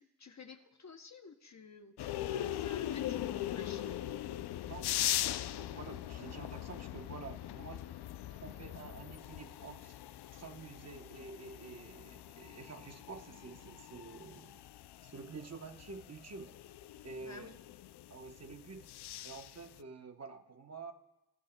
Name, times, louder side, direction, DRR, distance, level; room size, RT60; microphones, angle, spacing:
voice 1, 0.0-4.0 17.2-17.6, left 4 dB, 35° left, 7 dB, 0.8 m, -52 dB
sound 1, 2.0-19.8, left 12 dB, 60° left, 0.5 m, -41 dB
voice 2, 4.7-7.8 8.3-10.0 10.3-14.6 15.0-16.5 17.0-17.6 18.1-18.9 19.2-20.9, right 4 dB, 35° right, 6 dB, 1.0 m, -49 dB
25.0 x 12.5 x 2.2 m, 0.98 s
cardioid pair, 70°, 45 cm